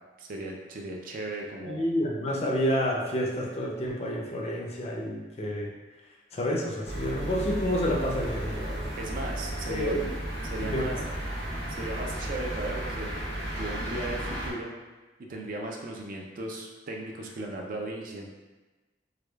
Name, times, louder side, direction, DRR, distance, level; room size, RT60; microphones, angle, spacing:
voice 1, 0.2-1.9 9.0-10.0 10.4-11.0 11.7-13.1 13.5-14.7 15.3-18.3, right 2 dB, 50° right, 0 dB, 0.4 m, -36 dB
voice 2, 1.7-5.7 6.3-8.9 9.7-10.1 10.7-11.0, equal, 35° left, -1 dB, 0.4 m, -29 dB
sound 1, 6.8-14.5, right 1 dB, 70° right, 1.1 m, -34 dB
4.7 x 2.2 x 2.3 m, 1.2 s
head